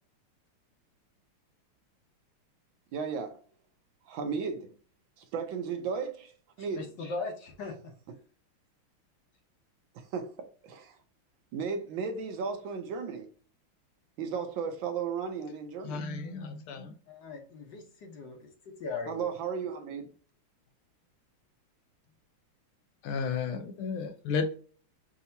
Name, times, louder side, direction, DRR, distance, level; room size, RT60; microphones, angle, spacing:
voice 1, 2.9-3.4 4.1-4.7 5.2-6.8 9.9-11.0 11.5-13.3 14.2-16.1 19.1-20.1, right 6 dB, 70° right, 1.3 m, -35 dB
voice 2, 6.6-7.9 17.1-18.5 18.8-19.3, left 3 dB, 60° left, 1.6 m, -39 dB
voice 3, 15.8-16.9 23.0-24.6, left 5 dB, 85° left, 1.6 m, -33 dB
5.7 x 2.8 x 2.7 m
omnidirectional pair, 2.4 m